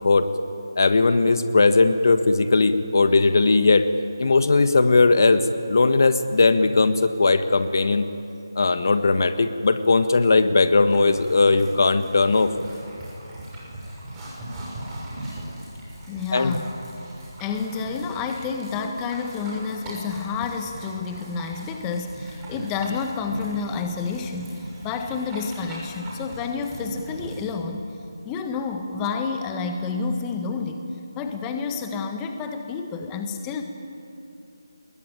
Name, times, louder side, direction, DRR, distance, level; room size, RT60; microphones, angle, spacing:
voice 1, 0.8-3.9 4.2-8.0 8.5-12.5 16.3-16.6, left 3 dB, 55° left, 10 dB, 1.5 m, -18 dB
sound 1, 10.7-27.5, right 1 dB, 10° right, 6.6 m, -39 dB
voice 2, 16.1-16.7 17.4-27.8 28.2-30.8 31.1-33.6, left 5 dB, 15° left, 5 dB, 1.5 m, -29 dB
27.5 x 22.0 x 9.1 m, 2.7 s
figure-of-eight pair, 165°, 2 cm